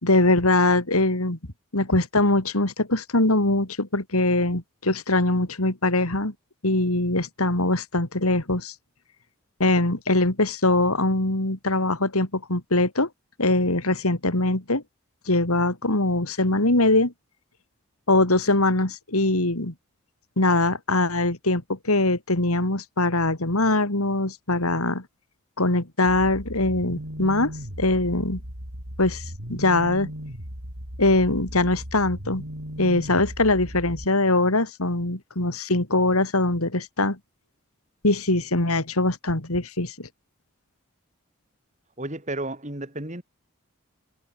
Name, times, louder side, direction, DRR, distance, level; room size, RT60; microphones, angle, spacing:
voice 1, 0.0-1.4 1.7-6.3 6.6-8.7 9.6-13.1 13.4-14.8 15.3-17.1 18.1-19.7 20.4-25.0 25.6-27.5 27.8-28.4 29.0-29.2 29.5-30.1 31.0-32.4 32.8-37.2 38.0-40.1, left 2 dB, 85° left, 3.6 m, -22 dB
sound 1, 26.1-34.1, equal, 75° right, 7.9 m, -37 dB
voice 2, 42.0-43.2, right 1 dB, 35° right, 3.0 m, -32 dB
head